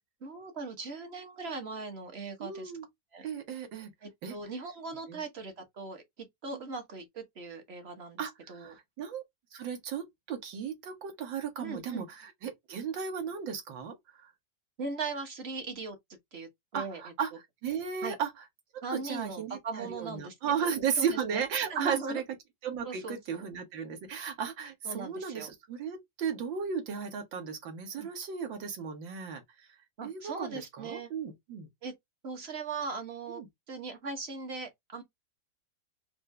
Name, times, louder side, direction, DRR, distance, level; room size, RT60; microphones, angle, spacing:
voice 1, 0.2-2.7 3.1-3.3 4.0-8.8 11.6-12.0 14.8-16.0 16.3-17.1 18.0-18.2 18.8-20.3 20.6-21.4 21.7-22.2 22.8-23.5 24.8-25.5 28.0-28.1 30.0-31.1 31.8-31.9 32.2-33.4 33.7-35.0, right 4 dB, 40° right, 1.1 m, -39 dB
voice 2, 2.4-2.9 3.2-3.9 4.2-4.4 5.1-5.2 8.2-9.2 9.5-14.3 16.7-17.3 17.6-18.3 18.9-22.2 22.6-29.4 30.0-31.7 33.3-33.5, right 7 dB, 85° right, 1.9 m, -35 dB
4.5 x 2.6 x 3.2 m
omnidirectional pair, 2.0 m